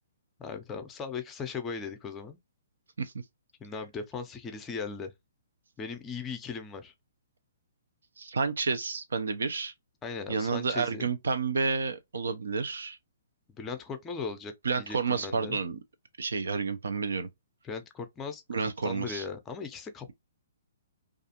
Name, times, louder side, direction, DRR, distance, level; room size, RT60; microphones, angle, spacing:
voice 1, 0.4-2.4 3.6-5.1 5.8-6.9 10.0-11.1 13.6-15.6 17.6-18.4 18.8-20.1, left 5 dB, 15° left, 0.5 m, -38 dB
voice 2, 8.2-9.7 10.3-13.0 14.6-15.8 16.2-17.3 18.5-19.2, right 4 dB, 85° right, 0.5 m, -30 dB
2.4 x 2.4 x 2.8 m
hypercardioid pair, 150°, 0 cm